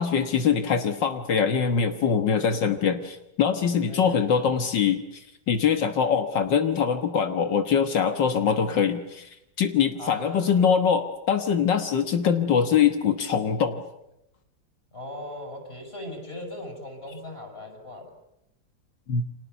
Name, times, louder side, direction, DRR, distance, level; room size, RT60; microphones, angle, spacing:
voice 1, 0.0-13.8 19.1-19.3, left 7 dB, 75° left, 7 dB, 2.1 m, -23 dB
voice 2, 3.9-4.3 10.0-10.7 14.9-18.1, left 1 dB, 30° left, 5 dB, 7.2 m, -39 dB
30.0 x 26.0 x 7.0 m, 0.84 s
omnidirectional pair, 2.0 m